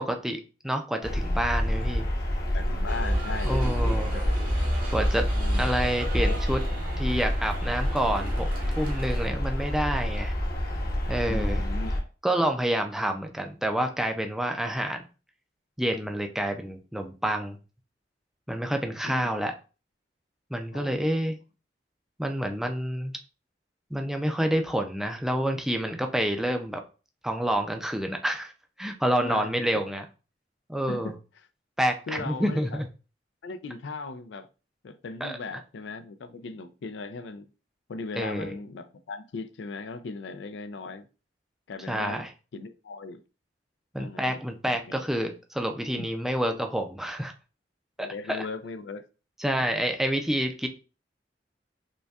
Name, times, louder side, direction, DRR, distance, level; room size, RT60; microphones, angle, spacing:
voice 1, 0.0-2.1 3.4-4.1 4.9-5.3 5.5-6.6 6.9-8.5 8.8-10.3 11.1-11.6 12.2-15.0 15.8-17.6 18.5-19.5 20.5-21.4 22.2-23.2 23.9-26.8 27.2-28.5 28.8-30.0 30.7-31.1 31.8-32.9 35.2-35.3 38.2-38.5 41.9-42.3 43.9-47.3 48.0-48.5 49.4-50.7, right 1 dB, ahead, 4 dB, 0.4 m, -28 dB
sound 1, 1.0-12.0, equal, 55° left, 1.0 m, -29 dB
voice 2, 2.5-4.5 5.3-5.7 6.2-6.4 11.3-12.0 19.0-19.3 20.7-21.2 29.2-29.9 30.9-31.2 32.1-32.8 33.4-34.5 34.8-37.5 37.9-41.1 41.7-42.2 42.5-43.2 44.0-44.4 44.6-45.0 48.0-49.0, left 3 dB, 80° left, 11 dB, 0.4 m, -38 dB
sound 2, 2.9-9.3, equal, 50° right, 0.9 m, -30 dB
5.1 x 2.2 x 2.3 m, 0.33 s
head